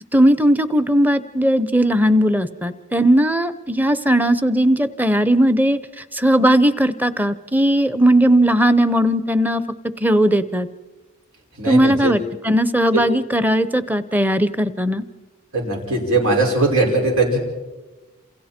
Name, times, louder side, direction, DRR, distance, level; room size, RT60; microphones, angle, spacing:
voice 1, 0.1-5.8 6.1-9.6 10.0-10.7 11.7-15.0, right 1 dB, 10° right, 13 dB, 0.8 m, -17 dB
voice 2, 11.6-12.1 12.9-13.0 15.5-17.4, right 2 dB, 85° right, 0 dB, 5.8 m, -19 dB
28.5 x 28.5 x 4.4 m, 1.2 s
head